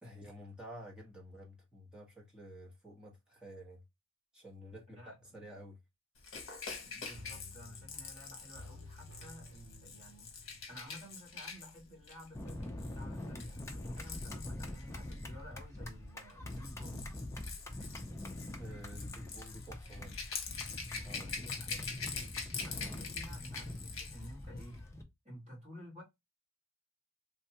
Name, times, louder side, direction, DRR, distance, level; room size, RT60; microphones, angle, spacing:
voice 1, 0.0-3.8 4.3-5.8 18.6-20.2 21.0-21.9, equal, 5° right, 1.0 m, -51 dB
voice 2, 4.9-5.4 6.8-10.3 10.7-17.1 19.0-19.2 21.2-21.7 22.6-24.8 25.2-26.0, equal, 35° right, 1.9 m, -53 dB
Rattle / Rattle (instrument), 6.2-15.3 16.2-24.3 24.6-24.7, left 5 dB, 70° left, 0.9 m, -45 dB
sound 1, 7.1-11.8 12.2-12.3, left 1 dB, 70° right, 0.7 m, -54 dB
sound 2, 12.3-25.0, left 1 dB, 15° left, 0.5 m, -44 dB
3.3 x 2.3 x 2.8 m
head